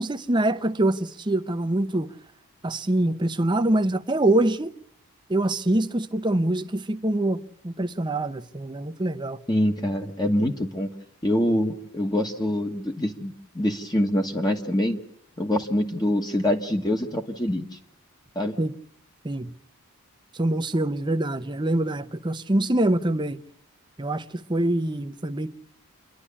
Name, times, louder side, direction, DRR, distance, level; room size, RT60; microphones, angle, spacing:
voice 1, 0.0-2.1 2.6-4.7 5.3-9.4 18.6-18.7 19.2-19.5 20.3-23.4 24.0-25.5, right 1 dB, 20° right, 0.7 m, -24 dB
voice 2, 9.5-10.9 11.2-15.0 15.4-17.7 18.3-18.6, left 1 dB, 20° left, 1.4 m, -25 dB
28.5 x 11.5 x 8.5 m
head